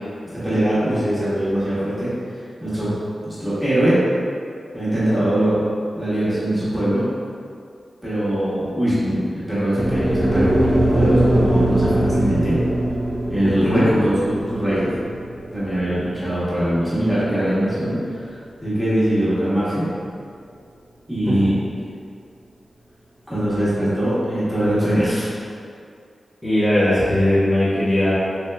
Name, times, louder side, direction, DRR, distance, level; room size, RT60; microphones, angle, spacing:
voice 1, 0.3-2.1 2.6-2.9 3.2-4.0 4.7-5.6 5.9-7.0 8.0-9.2 9.5-12.6 13.3-14.9 15.5-19.8 21.1-21.5 23.3-25.4, right 1 dB, ahead, -12 dB, 1.3 m, -21 dB
sound 1, 9.8-18.0, right 1 dB, 25° right, 0.5 m, -21 dB
voice 2, 13.4-13.9 21.3-21.5 26.4-28.2, left 1 dB, 15° left, -10 dB, 1.1 m, -19 dB
3.3 x 2.7 x 3.3 m, 2.3 s
wide cardioid pair, 75°, 0 cm